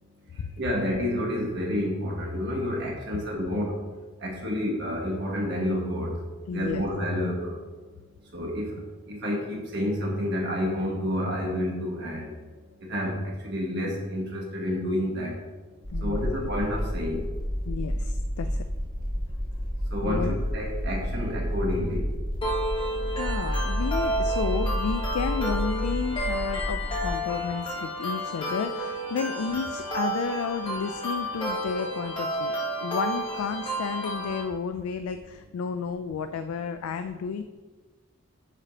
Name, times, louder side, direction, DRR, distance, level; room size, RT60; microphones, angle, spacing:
voice 1, 0.4-3.8 4.2-6.2 6.5-7.6 8.3-8.8 9.1-12.4 12.8-15.4 16.0-17.3 19.9-22.1, left 1 dB, 50° right, -2 dB, 1.6 m, -29 dB
voice 2, 6.5-6.9 15.9-16.4 17.7-18.6 20.0-20.3 23.2-37.4, left 6 dB, 85° left, 9 dB, 0.3 m, -32 dB
sound 1, 15.8-27.1, equal, 40° left, 1.4 m, -30 dB
sound 2, 22.4-34.4, right 1 dB, 25° left, 1.2 m, -31 dB
9.8 x 4.9 x 2.8 m, 1.3 s
head